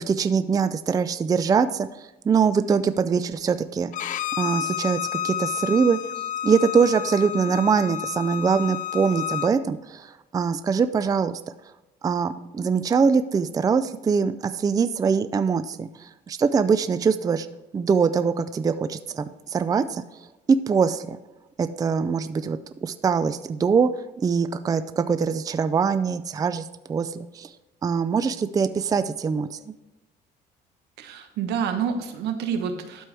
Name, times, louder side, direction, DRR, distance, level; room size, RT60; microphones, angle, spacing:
voice 1, 0.0-3.9 4.4-11.4 12.0-17.5 17.7-21.2 21.6-23.9 24.2-27.5 27.8-29.7, right 5 dB, 20° right, 12 dB, 0.4 m, -23 dB
Bowed string instrument, 3.9-9.5, left 10 dB, 50° left, 0.5 m, -30 dB
voice 2, 31.0-33.0, right 7 dB, 80° right, 7 dB, 1.2 m, -28 dB
12.0 x 4.6 x 3.4 m, 1.0 s
cardioid pair, 110°, 17 cm